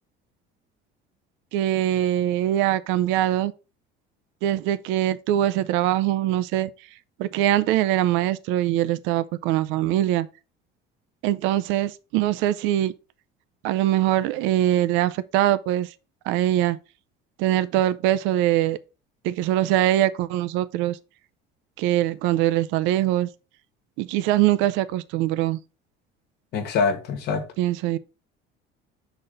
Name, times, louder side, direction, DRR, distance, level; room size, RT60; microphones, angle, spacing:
voice 1, 1.5-3.5 4.4-6.7 7.2-10.3 11.2-12.9 13.6-15.9 16.3-16.8 17.4-18.8 19.2-21.0 21.8-23.3 24.0-25.6 27.6-28.0, right 13 dB, 70° right, 0.5 m, -22 dB
voice 2, 26.5-27.4, left 5 dB, 55° left, 1.4 m, -24 dB
6.5 x 4.1 x 3.9 m
cardioid pair, 165°, 20 cm